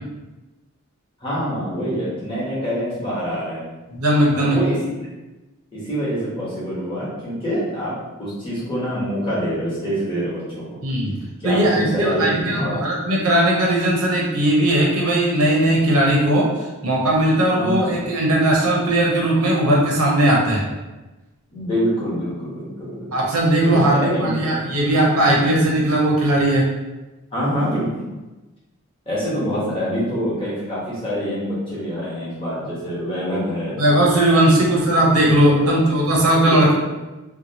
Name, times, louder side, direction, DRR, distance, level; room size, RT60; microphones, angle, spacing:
voice 1, 1.2-3.7 4.3-4.8 5.7-7.9 8.2-10.8 11.4-12.8 17.6-18.0 21.5-23.2 23.6-24.6 25.3-25.8 27.3-28.0 29.1-33.8 34.5-34.7 35.5-35.9 36.4-36.7, equal, 25° left, -9 dB, 0.9 m, -26 dB
voice 2, 3.9-4.6 10.8-11.2 11.4-16.5 16.8-20.6 23.1-26.7 33.8-36.7, right 1 dB, 80° right, -3 dB, 0.7 m, -18 dB
2.7 x 2.2 x 2.7 m, 1.1 s
head